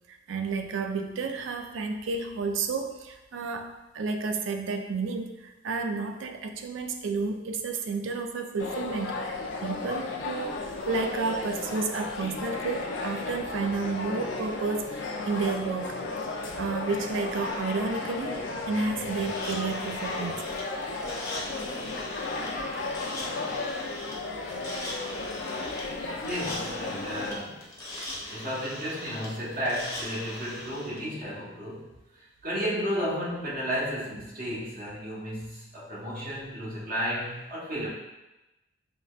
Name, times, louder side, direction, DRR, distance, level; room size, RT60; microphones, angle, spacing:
voice 1, 0.1-9.2 9.6-16.0 16.6-20.5, right 4 dB, 85° right, 5 dB, 0.4 m, -31 dB
sound 1, 8.6-27.3, left 3 dB, 80° left, 0.5 m, -34 dB
sound 2, 19.1-31.0, left 1 dB, 15° left, 0.7 m, -40 dB
voice 2, 26.2-27.6 28.3-31.9 32.2-37.9, equal, 45° right, -7 dB, 1.1 m, -33 dB
5.4 x 2.2 x 2.4 m, 1.0 s
head